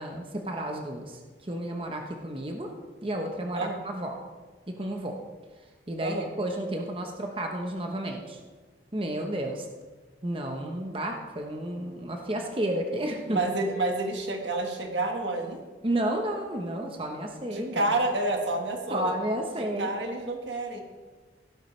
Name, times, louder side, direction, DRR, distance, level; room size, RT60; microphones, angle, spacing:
voice 1, 0.0-2.7 3.0-4.1 4.7-5.2 5.9-8.4 8.9-9.7 10.2-13.4 15.8-17.9 18.9-19.9, right 1 dB, 30° right, 2 dB, 1.0 m, -32 dB
voice 2, 13.3-15.6 17.5-19.1 19.8-20.8, right 2 dB, 85° right, 3 dB, 1.7 m, -29 dB
15.5 x 12.5 x 3.3 m, 1.4 s
head